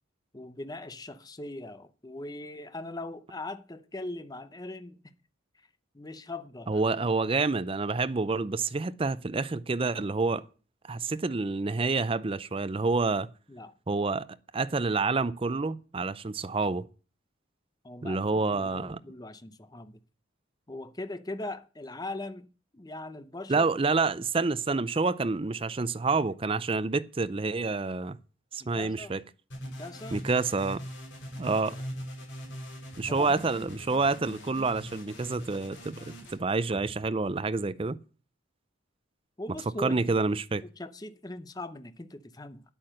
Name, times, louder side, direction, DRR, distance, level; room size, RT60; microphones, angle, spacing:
voice 1, 0.3-5.0 5.9-6.8 13.5-13.7 17.8-18.2 18.5-20.0 20.7-22.5 22.7-23.6 28.6-29.2 29.6-30.2 31.4-31.8 33.1-33.4 39.4-40.0 40.8-42.6, left 2 dB, 20° left, 0.7 m, -40 dB
voice 2, 6.7-10.4 10.9-13.3 13.9-14.3 14.5-16.9 18.0-19.0 23.5-28.2 28.5-29.2 30.1-30.8 31.4-31.8 33.0-36.0 36.3-38.0 39.8-40.6, right 3 dB, 25° right, 0.5 m, -28 dB
sound 1, 29.5-36.4, equal, 65° left, 6.2 m, -42 dB
9.6 x 8.7 x 6.3 m
head